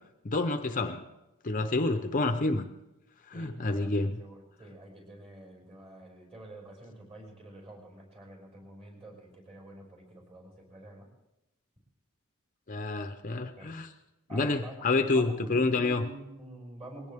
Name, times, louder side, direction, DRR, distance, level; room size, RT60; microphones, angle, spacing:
voice 1, 0.2-1.0 1.4-2.7 3.3-4.2 12.7-13.9 14.3-16.1, left 3 dB, 40° left, 8 dB, 0.8 m, -28 dB
voice 2, 3.3-11.1 13.6-13.8 14.3-14.9 15.1-17.1, right 1 dB, 30° right, 1 dB, 5.7 m, -48 dB
21.5 x 17.5 x 3.6 m, 0.95 s
head